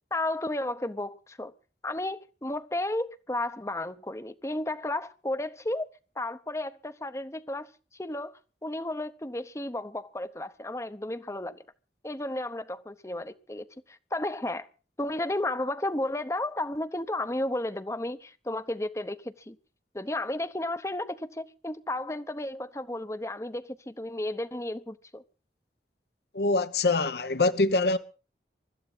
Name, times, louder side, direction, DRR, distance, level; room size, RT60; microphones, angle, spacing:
voice 1, 0.1-1.5 1.8-5.9 6.2-11.6 12.0-14.7 15.0-19.6 19.9-25.2, left 1 dB, 15° left, 0.9 m, -33 dB
voice 2, 26.3-28.0, left 3 dB, 65° left, 1.0 m, -24 dB
24.0 x 13.0 x 4.0 m
head